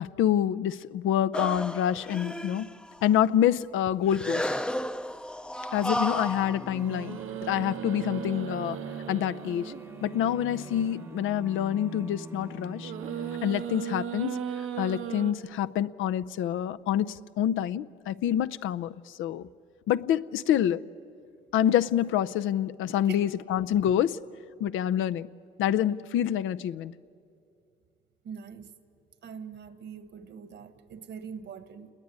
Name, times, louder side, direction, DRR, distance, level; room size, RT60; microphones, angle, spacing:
voice 1, 0.0-2.7 3.0-4.5 5.7-7.2 7.5-8.8 9.1-9.7 10.0-12.9 13.4-14.4 14.8-19.5 19.9-20.8 21.5-24.2 24.6-25.3 25.6-26.9, left 10 dB, 85° left, 0.6 m, -27 dB
sound 1, 1.3-3.1 4.1-7.5, left 1 dB, 5° left, 0.5 m, -33 dB
sound 2, 5.8-14.1, right 1 dB, 15° right, 0.9 m, -44 dB
sound 3, 6.8-11.6 12.8-15.3, right 9 dB, 85° right, 1.4 m, -37 dB
voice 2, 28.2-28.7 29.2-31.9, right 7 dB, 65° right, 1.6 m, -42 dB
28.5 x 20.5 x 9.6 m
cardioid pair, 90°, 20 cm